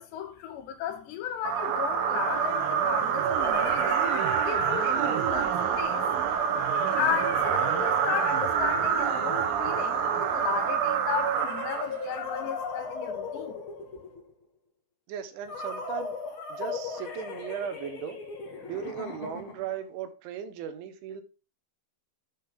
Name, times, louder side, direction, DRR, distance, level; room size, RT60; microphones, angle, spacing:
voice 1, 0.0-4.0 4.5-5.5 5.8-6.1 6.9-13.6, left 8 dB, 75° left, 3.6 m, -34 dB
sound 1, 1.4-12.2, right 7 dB, 70° right, 2.3 m, -26 dB
sound 2, 1.5-1.6 3.0-5.3 6.6-10.1 11.3-14.3 15.5-19.8, left 4 dB, 50° left, 1.5 m, -38 dB
voice 2, 15.1-16.2 16.5-18.2 18.7-21.2, right 8 dB, 90° right, 3.6 m, -37 dB
10.0 x 7.5 x 3.6 m
omnidirectional pair, 5.3 m